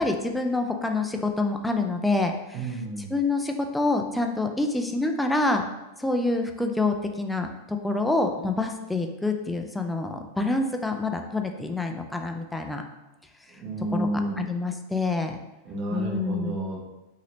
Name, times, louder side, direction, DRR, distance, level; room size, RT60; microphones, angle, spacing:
voice 1, 0.0-2.6 3.0-5.6 6.0-12.8 13.9-14.1 14.4-15.4 15.9-16.6, left 2 dB, 5° left, 4 dB, 0.3 m, -27 dB
voice 2, 2.5-3.1 13.5-14.4 15.6-16.8, right 1 dB, 40° right, -2 dB, 0.8 m, -31 dB
2.8 x 2.7 x 3.0 m, 1.0 s
figure-of-eight pair, 90°, 0 cm